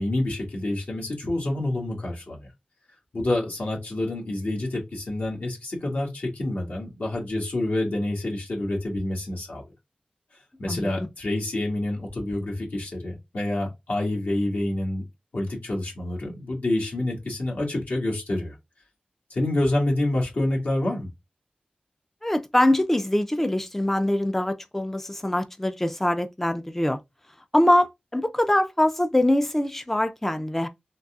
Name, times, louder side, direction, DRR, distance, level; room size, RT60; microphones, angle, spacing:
voice 1, 0.0-2.5 3.1-9.6 10.6-15.0 15.3-18.6 19.3-21.1, left 1 dB, 75° left, 1.5 m, -27 dB
voice 2, 10.7-11.1 22.2-27.0 27.5-30.7, left 1 dB, 10° left, 0.3 m, -23 dB
3.9 x 2.7 x 2.3 m
wide cardioid pair, 70°, 3 cm